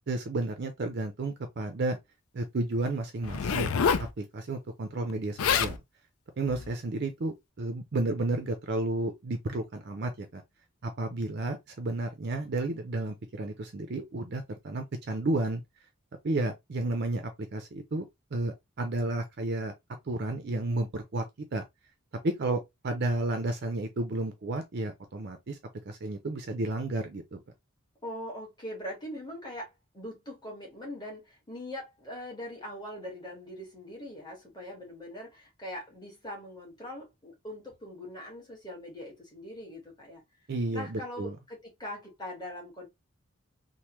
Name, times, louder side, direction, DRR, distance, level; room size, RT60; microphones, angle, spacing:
voice 1, 0.1-2.0 2.3-3.9 4.2-5.8 6.4-10.4 10.8-15.6 16.2-17.2 17.5-18.0 18.3-19.7 20.1-21.2 21.5-21.6 22.2-25.6 25.9-27.4 40.5-41.4, right 2 dB, 50° right, 0.5 m, -32 dB
Zipper (clothing), 3.2-4.1 5.1-5.2 5.4-5.8 6.5-6.7, left 6 dB, 90° left, 0.4 m, -27 dB
voice 2, 28.0-40.2 40.7-42.9, left 1 dB, 20° left, 1.4 m, -42 dB
3.3 x 2.1 x 2.9 m
head